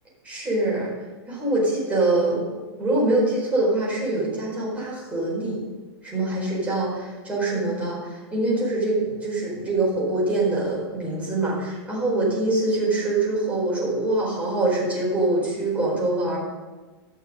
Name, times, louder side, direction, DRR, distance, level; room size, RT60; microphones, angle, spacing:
voice 1, 0.2-0.9 1.3-2.4 2.8-5.7 6.0-16.4, right 2 dB, 10° right, -5 dB, 4.8 m, -24 dB
14.0 x 6.6 x 6.6 m, 1.3 s
supercardioid pair, 160°, 14 cm